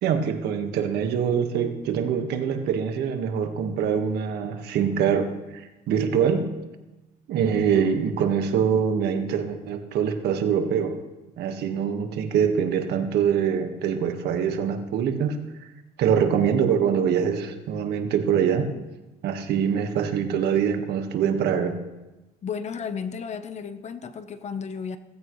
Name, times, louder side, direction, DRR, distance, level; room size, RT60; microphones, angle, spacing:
voice 1, 0.0-6.5 7.3-11.0 11.4-15.4 16.0-18.7 19.2-21.8, right 7 dB, 75° right, 6 dB, 1.6 m, -24 dB
voice 2, 22.4-25.0, left 6 dB, 40° left, 10 dB, 1.0 m, -33 dB
17.0 x 15.5 x 3.2 m, 1.0 s
cardioid pair, 110°, 17 cm